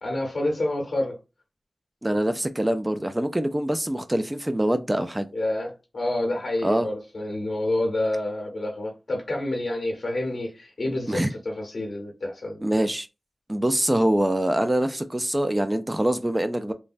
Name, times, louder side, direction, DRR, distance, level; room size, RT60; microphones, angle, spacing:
voice 1, 0.0-1.2 5.3-12.7, left 1 dB, 70° left, 0.7 m, -28 dB
voice 2, 2.0-5.3 6.6-6.9 11.1-11.3 12.6-13.1 13.5-16.7, right 1 dB, 20° right, 0.3 m, -24 dB
3.2 x 2.0 x 2.5 m
wide cardioid pair, 70°, 0 cm